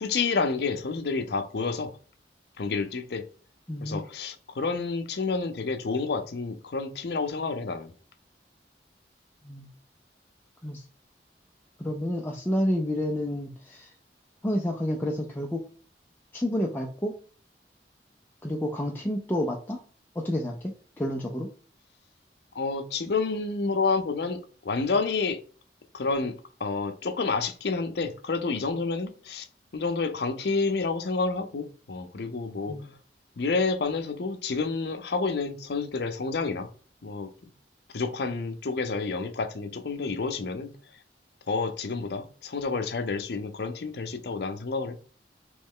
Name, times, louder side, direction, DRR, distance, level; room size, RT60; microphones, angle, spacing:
voice 1, 0.0-1.9 2.6-3.2 3.8-7.9 22.6-25.4 25.9-26.3 26.6-29.5 29.7-32.8 33.4-36.7 37.0-37.3 37.9-40.7 41.5-44.9, left 4 dB, 70° left, 0.5 m, -29 dB
voice 2, 3.7-4.0 9.4-9.7 10.6-10.8 11.8-13.9 14.4-15.6 16.3-17.2 18.4-19.8 20.2-20.7 21.0-21.5 32.7-32.9, left 1 dB, 10° left, 0.4 m, -29 dB
3.1 x 3.1 x 3.6 m
head